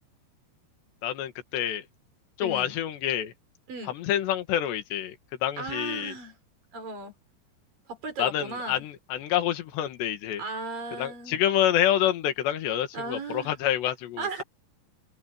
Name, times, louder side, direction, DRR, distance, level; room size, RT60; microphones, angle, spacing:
voice 1, 1.0-1.9 2.4-3.3 3.9-5.2 5.4-6.2 8.2-10.4 11.0-14.4, left 11 dB, 70° left, 4.0 m, -27 dB
voice 2, 2.4-2.7 3.7-3.9 5.6-6.4 6.7-7.1 7.9-8.8 10.4-11.4 12.9-13.5 14.2-14.4, right 3 dB, 50° right, 6.6 m, -36 dB
omnidirectional pair, 5.2 m